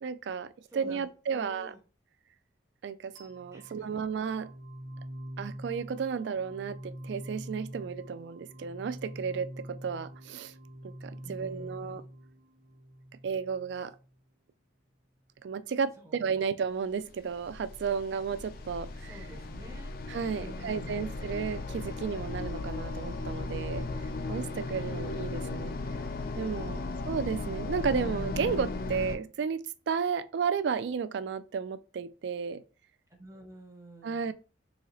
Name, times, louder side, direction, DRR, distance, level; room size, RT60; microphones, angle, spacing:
voice 1, 0.0-1.7 2.8-4.5 5.4-10.5 10.8-12.0 13.2-13.9 15.4-19.2 20.1-23.9 24.3-25.7 26.4-26.8 27.1-32.6 34.0-34.3, right 6 dB, 65° right, 0.3 m, -33 dB
voice 2, 0.7-1.8 3.5-4.0 11.2-12.0 16.0-16.4 18.9-19.9 20.3-21.1 26.6-27.0 33.1-34.3, right 1 dB, 15° right, 0.6 m, -50 dB
sound 1, 3.2-14.1, equal, 80° right, 0.9 m, -45 dB
sound 2, 17.0-29.2, left 3 dB, 50° left, 0.4 m, -36 dB
4.1 x 2.8 x 2.9 m
head